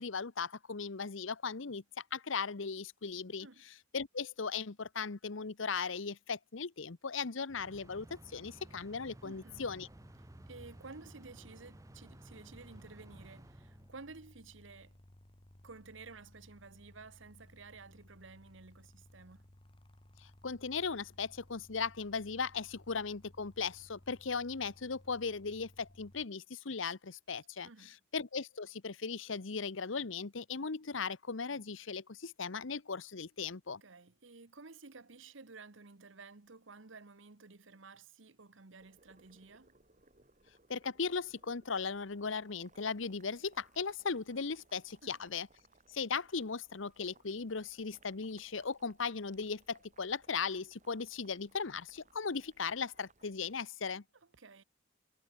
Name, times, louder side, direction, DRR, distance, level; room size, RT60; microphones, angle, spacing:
voice 1, 0.0-1.8 2.1-3.5 3.9-9.9 20.2-33.8 40.7-45.5 45.9-54.0, left 5 dB, 75° left, 0.9 m, -38 dB
sound 1, 7.5-14.3, right 1 dB, 15° right, 0.6 m, -55 dB
voice 2, 9.2-9.7 10.5-15.0 15.6-19.5 27.6-28.0 33.8-39.7 45.0-45.2 54.4-54.6, right 4 dB, 70° right, 1.2 m, -53 dB
sound 2, 9.5-26.2, left 1 dB, 25° left, 1.4 m, -60 dB
Boiling, 38.8-53.6, right 3 dB, 40° right, 4.0 m, -67 dB
head